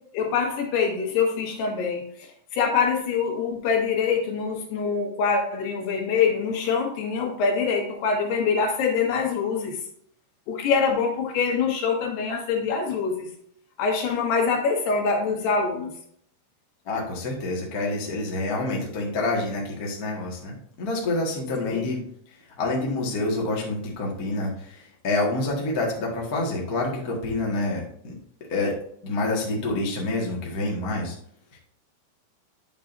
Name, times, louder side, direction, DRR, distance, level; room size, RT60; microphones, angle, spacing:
voice 1, 0.1-9.8 10.5-13.3 13.8-15.9 21.6-21.9, left 5 dB, 80° left, 1 dB, 3.5 m, -24 dB
voice 2, 16.8-28.1 28.5-28.8 29.0-31.2 31.5-31.6, left 2 dB, 55° left, -2 dB, 1.0 m, -27 dB
9.6 x 6.6 x 2.6 m, 0.66 s
omnidirectional pair, 4.6 m